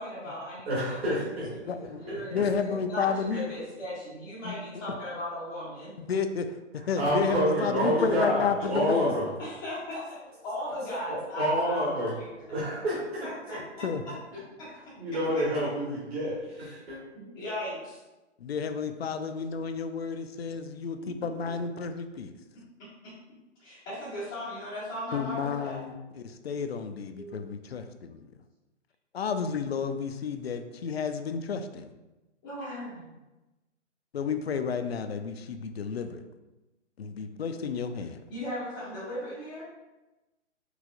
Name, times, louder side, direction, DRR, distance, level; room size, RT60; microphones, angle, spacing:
voice 1, 0.0-0.7 1.8-5.9 9.4-10.0 10.4-12.5 13.2-13.8 14.6-14.7 16.7-16.8 17.1-18.0 21.0-21.5 23.6-25.8 27.1-27.4 32.4-33.0 38.3-39.7, left 1 dB, 10° left, -15 dB, 0.5 m, -37 dB
voice 2, 0.7-1.6 2.1-2.4 3.3-3.4 7.0-9.3 11.1-12.2 12.5-13.6 14.3-14.4 15.0-17.0, equal, 55° right, -6 dB, 1.4 m, -28 dB
voice 3, 1.7-2.0 2.3-3.5 4.4-4.5 6.0-6.6 6.9-9.2 13.8-14.0 18.4-22.3 25.1-28.3 29.1-31.9 34.1-36.2 37.0-38.2, left 6 dB, 60° left, 8 dB, 0.5 m, -31 dB
4.7 x 3.0 x 2.5 m, 1.1 s
figure-of-eight pair, 135°, 36 cm